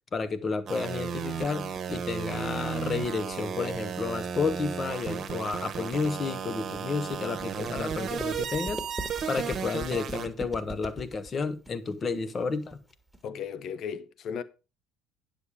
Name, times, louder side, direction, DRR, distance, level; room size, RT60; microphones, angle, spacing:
voice 1, 0.1-8.8 9.3-12.8, left 4 dB, 35° left, 1.2 m, -31 dB
sound 1, 0.7-10.3, right 7 dB, 45° right, 1.2 m, -34 dB
sound 2, 1.6-13.3, right 1 dB, ahead, 1.8 m, -43 dB
voice 2, 13.2-14.4, left 7 dB, 50° left, 0.9 m, -35 dB
9.7 x 6.9 x 4.9 m
hypercardioid pair, 60°, 0 cm